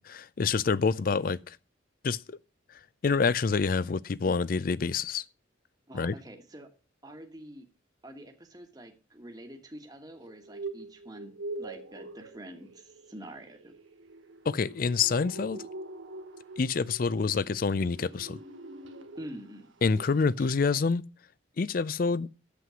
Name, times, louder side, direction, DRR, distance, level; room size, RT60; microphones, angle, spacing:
voice 1, 0.0-1.6 2.0-2.4 3.0-5.2 5.9-6.1 14.5-15.6 16.6-18.4 19.8-21.0 21.6-22.3, left 5 dB, 45° left, 0.4 m, -27 dB
voice 2, 5.9-6.7 7.0-7.7 8.0-11.3 11.6-13.7 19.2-19.7, right 1 dB, 20° right, 1.3 m, -46 dB
sound 1, 10.3-19.5 19.8-20.1 20.4-20.5, right 2 dB, 80° right, 1.2 m, -44 dB
8.4 x 7.7 x 6.2 m
head